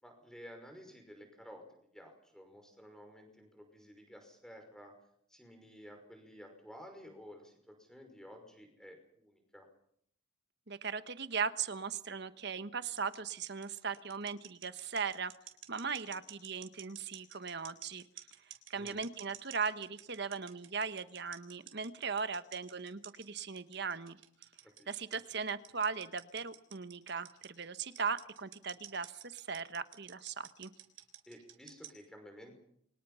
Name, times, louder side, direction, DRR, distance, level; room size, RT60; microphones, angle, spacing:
voice 1, 0.0-4.9 5.3-9.7 18.7-19.0 24.8-24.9 31.3-32.6, equal, 5° left, 4 dB, 5.6 m, -53 dB
voice 2, 10.7-15.3 15.7-18.0 18.7-24.2 24.9-30.7, right 5 dB, 55° right, 12 dB, 1.2 m, -38 dB
sound 1, 13.0-32.0, right 11 dB, 70° right, 3.8 m, -51 dB
29.0 x 24.0 x 5.7 m, 0.68 s
head